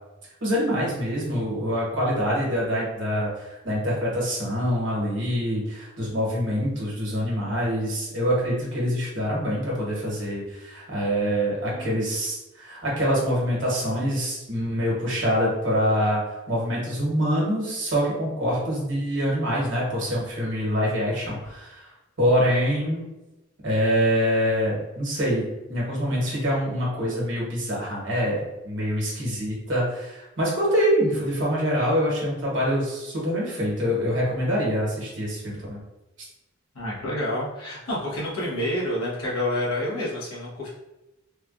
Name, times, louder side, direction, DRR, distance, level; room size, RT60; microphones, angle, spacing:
voice 1, 0.4-16.2 16.5-21.9 22.2-23.0 23.6-35.8, equal, 55° right, -5 dB, 1.1 m, -25 dB
voice 2, 11.7-12.0 36.7-40.7, left 1 dB, 90° left, -5 dB, 1.0 m, -28 dB
3.3 x 2.3 x 2.5 m, 0.98 s
head